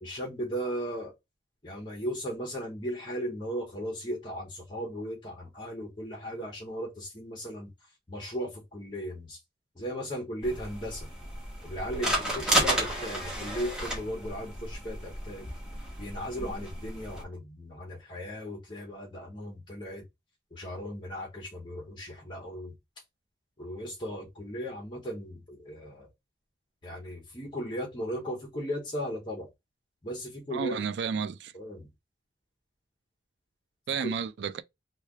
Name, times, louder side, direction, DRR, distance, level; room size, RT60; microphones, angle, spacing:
voice 1, 0.0-1.1 1.6-7.7 8.1-9.4 9.8-11.1 11.6-15.5 16.0-20.0 20.5-22.7 23.6-26.1 26.8-29.5 30.0-30.8 31.5-31.9 34.0-34.1, equal, 25° left, 0.8 m, -36 dB
sound 1, 10.4-17.2, equal, 5° right, 0.9 m, -32 dB
voice 2, 30.5-31.5 33.9-34.6, right 6 dB, 75° right, 0.3 m, -32 dB
3.2 x 2.3 x 3.5 m
head